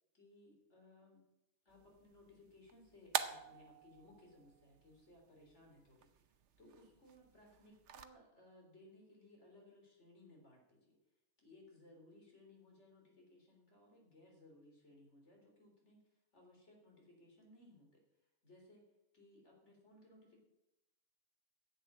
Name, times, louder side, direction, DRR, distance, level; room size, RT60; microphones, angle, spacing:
voice 1, 0.1-1.3 1.7-11.0 11.4-16.0 16.3-18.0 18.4-18.8 19.1-20.4, left 1 dB, 70° left, 0 dB, 4.0 m, -63 dB
sound 1, 1.7-8.0, right 8 dB, 70° right, 1.1 m, -47 dB
11.0 x 7.9 x 8.7 m, 0.91 s
omnidirectional pair, 1.2 m